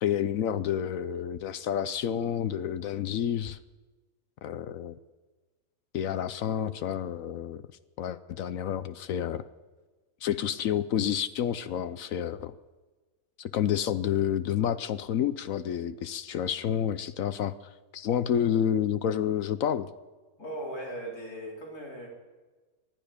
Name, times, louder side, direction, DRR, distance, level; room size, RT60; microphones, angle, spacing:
voice 1, 0.0-3.6 4.4-5.0 5.9-7.6 8.0-9.5 10.2-12.5 13.4-17.5 17.9-19.9, left 9 dB, 70° left, 13 dB, 1.0 m, -29 dB
voice 2, 20.4-22.1, right 1 dB, 90° left, -3 dB, 4.1 m, -38 dB
19.5 x 12.5 x 5.0 m, 1.3 s
omnidirectional pair, 1.5 m